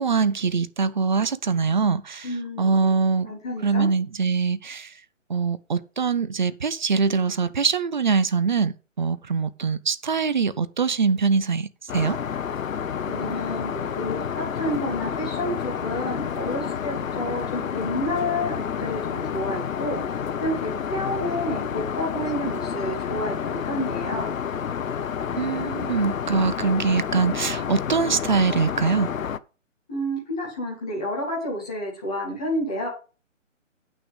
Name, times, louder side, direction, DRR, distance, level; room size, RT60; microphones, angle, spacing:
voice 1, 0.0-2.3 2.6-3.3 3.6-4.9 5.3-12.2 25.4-29.1, right 5 dB, 40° right, 0.5 m, -23 dB
voice 2, 2.2-2.9 3.2-3.9 13.0-24.4 29.9-32.9, left 1 dB, 5° left, 0.6 m, -30 dB
Aircraft, 11.9-29.4, left 7 dB, 85° left, 0.8 m, -29 dB
9.0 x 6.2 x 5.0 m
hypercardioid pair, 165°, 39 cm